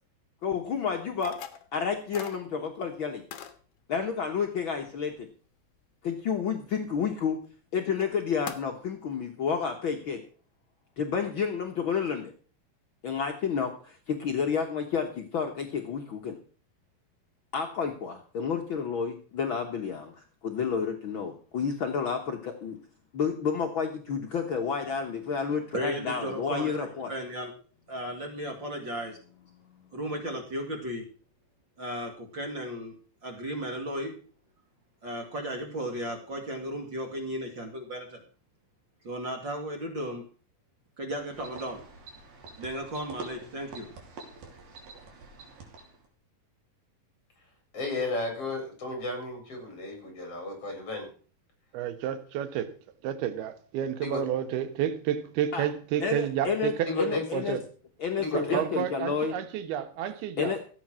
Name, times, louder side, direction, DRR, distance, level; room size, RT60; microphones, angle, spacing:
voice 1, 0.4-1.3 1.7-3.2 3.9-5.3 6.0-7.4 7.7-10.2 11.0-12.3 13.0-16.4 17.5-22.8 23.1-27.1 55.5-55.7 56.0-57.6 58.0-59.3 60.4-60.6, left 6 dB, 80° left, 1.1 m, -30 dB
sound 1, 1.2-1.7 2.1-2.4 3.3-3.5 7.4-7.5 8.0-8.1 8.5-8.6, left 9 dB, 65° left, 2.5 m, -40 dB
voice 2, 25.7-27.5 27.9-29.2 29.9-31.0 31.8-33.0 33.2-34.1 35.0-38.2 39.0-40.2 41.0-41.8 42.6-43.9, equal, 35° right, 2.3 m, -35 dB
sound 2, 41.2-46.1, right 3 dB, 65° right, 4.6 m, -46 dB
voice 3, 47.7-51.1 54.0-54.2 56.9-57.2 58.2-58.6, left 2 dB, 40° left, 5.3 m, -33 dB
voice 4, 51.7-52.7 53.0-57.7 58.3-60.7, right 10 dB, 90° right, 3.2 m, -31 dB
15.0 x 8.6 x 6.2 m
omnidirectional pair, 4.3 m